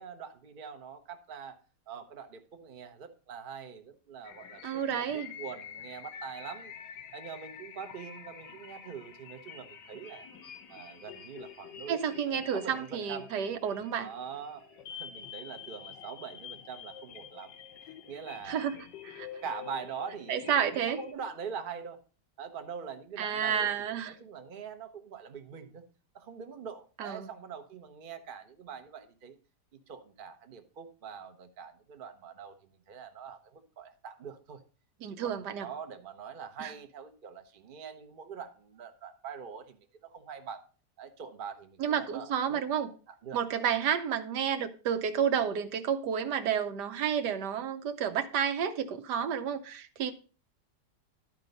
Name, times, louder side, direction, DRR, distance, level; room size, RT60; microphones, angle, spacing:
voice 1, 0.0-1.6 1.9-6.7 7.1-10.3 10.7-13.3 14.0-14.6 14.9-17.5 17.8-18.7 19.4-22.0 22.4-25.8 26.1-29.4 29.9-34.6 35.1-40.6 41.0-42.6 43.1-43.4, right 6 dB, 40° right, 0.9 m, -44 dB
sound 1, 4.2-21.1, left 8 dB, 90° left, 1.6 m, -47 dB
voice 2, 4.6-5.3 11.9-14.1 18.5-18.7 19.0-19.3 20.3-21.0 23.2-24.1 27.0-27.3 35.0-35.7 36.6-36.7 41.8-42.9 43.3-50.1, right 8 dB, 75° right, 1.4 m, -30 dB
12.0 x 4.6 x 5.3 m
omnidirectional pair, 1.8 m